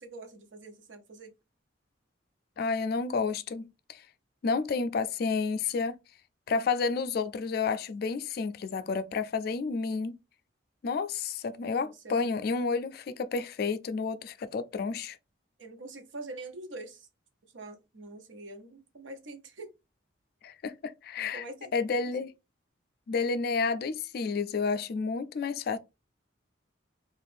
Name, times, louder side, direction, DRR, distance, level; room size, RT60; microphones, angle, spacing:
voice 1, 0.0-1.3 11.8-12.3 15.6-17.1 17.5-19.7 21.2-21.7, right 2 dB, 75° right, 0.7 m, -44 dB
voice 2, 2.6-4.0 4.4-6.0 6.5-10.2 10.8-15.2 20.4-21.4 21.7-22.3 23.1-25.8, left 4 dB, 50° left, 0.3 m, -30 dB
2.5 x 2.4 x 3.3 m
head